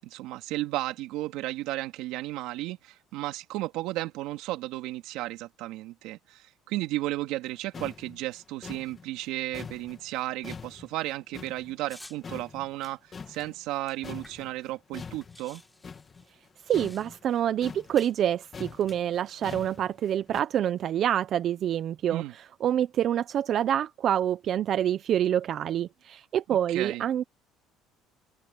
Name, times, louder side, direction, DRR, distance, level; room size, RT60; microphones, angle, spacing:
voice 1, 0.0-15.6 22.1-22.3 26.7-27.0, right 17 dB, 75° right, 3.2 m, -34 dB
sound 1, 7.5-7.6 7.7-12.0 12.2-13.8 14.0-20.4, left 5 dB, 30° left, 2.3 m, -44 dB
sound 2, 11.9-12.2 12.8-14.6 14.9-15.0 15.2-17.3 18.0-18.2 18.7-19.5, left 1 dB, 5° left, 3.4 m, -52 dB
voice 2, 16.7-27.2, right 10 dB, 50° right, 0.8 m, -27 dB
cardioid pair, 110°, 0 cm